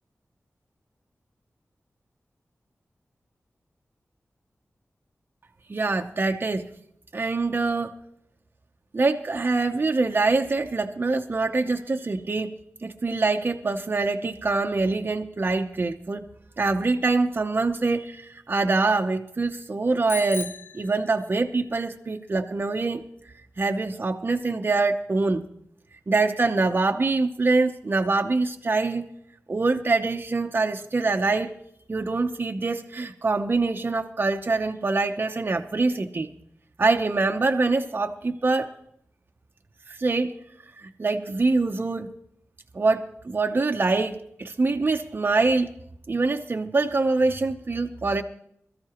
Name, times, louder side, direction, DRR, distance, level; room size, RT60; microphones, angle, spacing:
voice 1, 5.7-6.7 7.1-7.9 8.9-16.3 16.6-23.0 23.6-25.4 26.1-29.0 29.5-31.5 31.9-36.3 36.8-38.7 39.9-40.4 40.8-42.1 42.7-45.7 46.1-48.2, right 3 dB, 40° right, 4 dB, 0.7 m, -24 dB
Bicycle bell, 20.1-21.6, left 4 dB, 55° left, 0.8 m, -38 dB
22.0 x 13.5 x 2.9 m, 0.72 s
wide cardioid pair, 105°, 5 cm